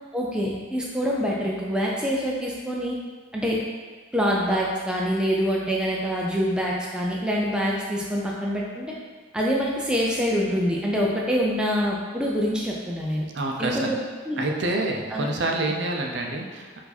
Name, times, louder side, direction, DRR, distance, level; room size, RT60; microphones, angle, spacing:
voice 1, 0.1-3.0 3.3-3.6 4.1-8.9 9.3-13.2 13.6-14.0 14.2-14.5 15.1-15.3, equal, 5° right, -4 dB, 0.3 m, -25 dB
voice 2, 13.3-14.0 14.4-16.8, right 2 dB, 60° right, 1 dB, 0.5 m, -27 dB
4.6 x 2.6 x 4.0 m, 1.4 s
head